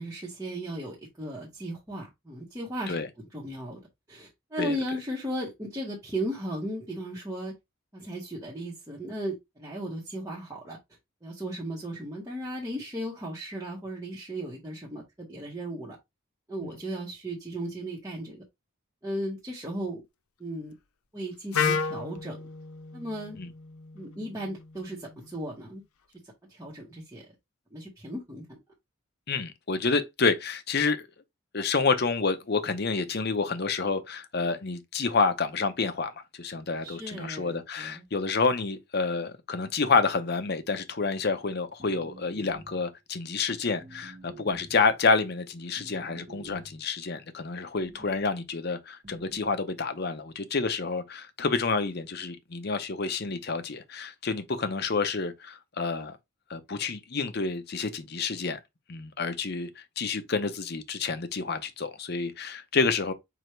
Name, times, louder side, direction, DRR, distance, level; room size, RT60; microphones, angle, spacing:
voice 1, 0.0-3.0 3.3-3.8 4.1-7.5 7.9-10.8 11.2-16.0 16.5-18.4 19.0-20.0 20.4-20.7 21.1-22.4 22.9-23.4 23.9-25.8 26.5-27.2 27.7-28.4 36.8-38.0, right 1 dB, 15° right, 1.0 m, -36 dB
Wind instrument woodwind instrument, 21.5-25.4, left 6 dB, 90° left, 0.6 m, -33 dB
voice 2, 29.3-31.0 31.5-56.2 56.5-58.6 58.9-63.1, left 4 dB, 45° left, 0.7 m, -29 dB
sound 1, 41.8-42.9 43.8-44.9 45.8-46.9 47.7-48.3 49.0-49.6, right 3 dB, 35° right, 0.7 m, -49 dB
4.9 x 2.4 x 4.4 m
head